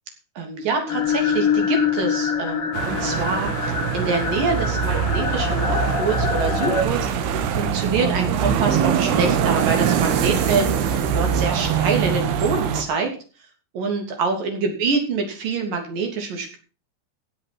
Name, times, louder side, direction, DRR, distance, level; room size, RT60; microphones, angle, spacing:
voice 1, 0.4-13.1 13.7-16.6, right 4 dB, 50° right, 4 dB, 4.4 m, -26 dB
sound 1, 0.9-6.8, left 6 dB, 90° left, 1.2 m, -25 dB
sound 2, 2.7-12.8, right 7 dB, 65° right, 3.1 m, -23 dB
17.5 x 7.8 x 6.1 m, 0.37 s
omnidirectional pair, 5.4 m